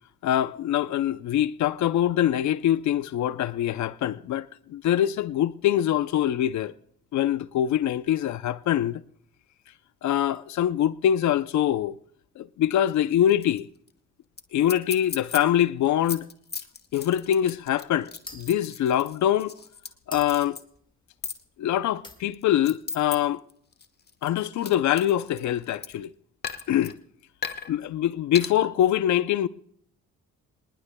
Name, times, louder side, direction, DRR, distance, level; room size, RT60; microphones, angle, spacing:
voice 1, 0.2-6.7 7.1-9.0 10.0-11.9 12.4-13.7 14.5-16.3 16.9-19.6 20.1-20.6 21.6-23.4 24.2-26.1 26.7-27.0 27.7-29.5, left 11 dB, 70° left, 0.6 m, -24 dB
sound 1, 13.1-13.6 13.9-14.0 14.4-14.5 14.7-15.4 15.8-19.9 20.2-20.6 21.2-21.4 22.1-23.2 23.5-26.0 26.4-26.9 27.4-27.7 28.3-28.5, left 5 dB, 35° left, 1.3 m, -36 dB
sound 2, 16.2-21.7 22.0-22.6, left 2 dB, 15° left, 1.6 m, -48 dB
26.5 x 19.5 x 2.2 m
cardioid pair, 90°, 30 cm